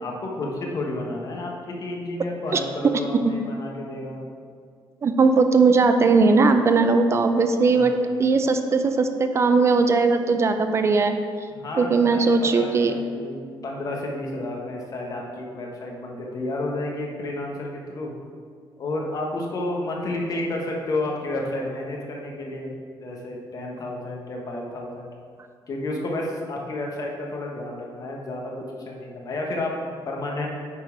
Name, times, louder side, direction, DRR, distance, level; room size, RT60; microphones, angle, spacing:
voice 1, 0.0-4.2 7.7-8.0 11.5-13.3 13.6-18.1 18.8-22.7 23.0-25.1 25.7-30.5, left 2 dB, 45° left, -1 dB, 1.3 m, -31 dB
voice 2, 2.5-3.0 5.0-7.9 8.2-11.2 11.8-12.9, right 4 dB, 35° right, 7 dB, 0.5 m, -19 dB
8.8 x 4.3 x 4.7 m, 2.1 s
cardioid pair, 130°, 8 cm